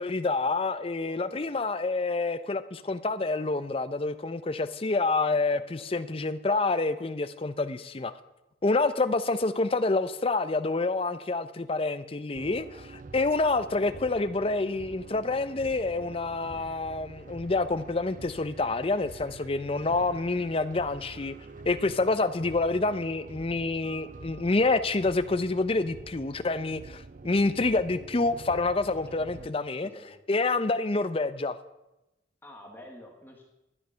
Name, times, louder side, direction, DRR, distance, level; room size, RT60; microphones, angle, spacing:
voice 1, 0.0-8.1 8.6-21.3 21.7-29.9 30.3-31.6, left 3 dB, 30° left, 0.5 m, -27 dB
voice 2, 1.1-1.5 5.1-5.9 29.1-29.5 29.8-30.1 32.4-33.4, left 1 dB, 10° left, 1.3 m, -50 dB
sound 1, 12.3-29.5, right 3 dB, 45° right, 0.5 m, -46 dB
12.0 x 9.1 x 5.6 m
head